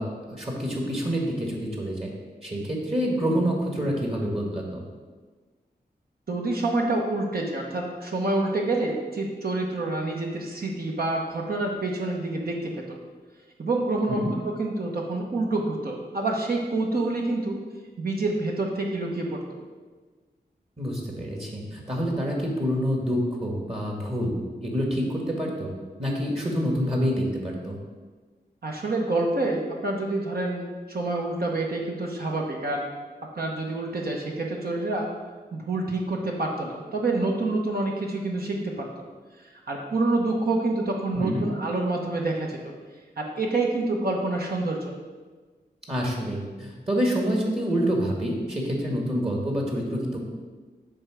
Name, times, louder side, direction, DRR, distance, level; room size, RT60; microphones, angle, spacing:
voice 1, 0.0-2.1 2.4-4.8 14.1-14.3 20.8-25.7 26.0-27.8 41.1-41.5 45.9-50.2, equal, 35° right, -1 dB, 1.7 m, -27 dB
voice 2, 6.3-13.0 13.6-17.6 18.0-19.6 28.6-32.8 33.3-35.1 35.5-39.0 39.5-42.7 43.2-45.0, right 2 dB, 60° right, -1 dB, 1.1 m, -27 dB
8.5 x 3.4 x 6.2 m, 1.4 s
wide cardioid pair, 65°, 17 cm